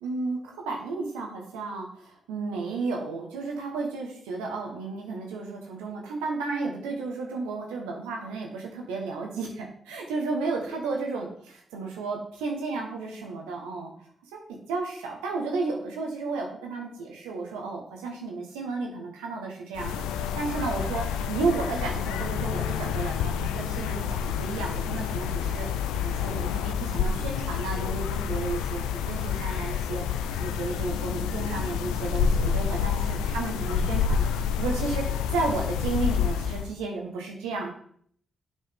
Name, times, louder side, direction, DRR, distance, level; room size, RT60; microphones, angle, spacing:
voice 1, 0.0-11.3 11.7-13.9 14.3-37.7, right 3 dB, 90° right, 1 dB, 1.1 m, -33 dB
sound 1, 19.7-36.7, left 7 dB, 85° left, 0.3 m, -28 dB
7.2 x 4.7 x 3.5 m, 0.62 s
hypercardioid pair, 40°, 0 cm